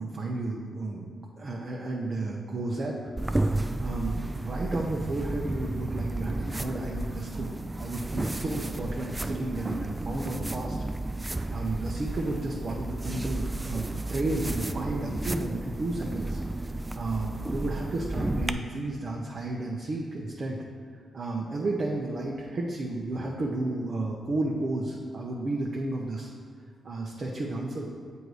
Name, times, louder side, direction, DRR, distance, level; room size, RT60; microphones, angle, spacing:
voice 1, 0.0-2.9 3.4-7.5 7.8-10.8 11.5-16.4 17.0-20.6 21.1-26.3 26.8-27.9, right 2 dB, 55° right, -2 dB, 0.6 m, -32 dB
sound 1, 3.2-18.5, right 2 dB, 20° right, 0.3 m, -32 dB
7.7 x 2.7 x 4.8 m, 2.1 s
supercardioid pair, 55°, 0 cm